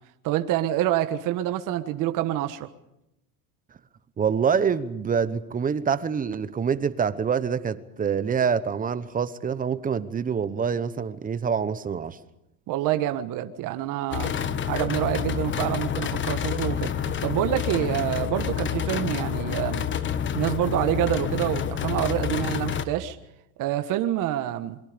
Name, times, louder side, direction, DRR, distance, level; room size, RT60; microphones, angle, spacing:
voice 1, 0.2-2.7 12.7-14.3 14.7-19.9 20.3-23.2 23.6-24.8, right 13 dB, 45° right, 1.4 m, -27 dB
voice 2, 4.2-12.2, right 6 dB, 20° right, 1.0 m, -26 dB
sound 1, 14.1-22.8, left 9 dB, 25° left, 1.3 m, -28 dB
28.5 x 23.0 x 5.2 m
supercardioid pair, 130°, 44 cm